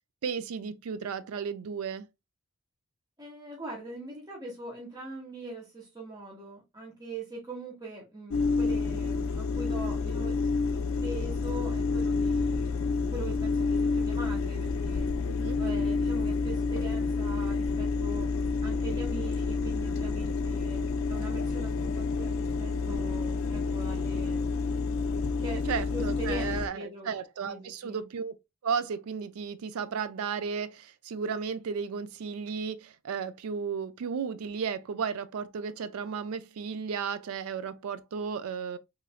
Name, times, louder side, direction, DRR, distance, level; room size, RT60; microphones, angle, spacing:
voice 1, 0.2-2.1 15.3-15.6 25.7-28.3 28.6-38.8, right 6 dB, 80° right, 0.4 m, -34 dB
voice 2, 3.2-10.4 10.7-15.1 15.6-18.3 18.6-20.8 21.1-24.6 25.4-27.1 27.4-28.1, right 2 dB, 20° right, 0.9 m, -42 dB
sound 1, 8.3-26.7, left 4 dB, 60° left, 0.4 m, -29 dB
3.0 x 2.5 x 2.3 m
head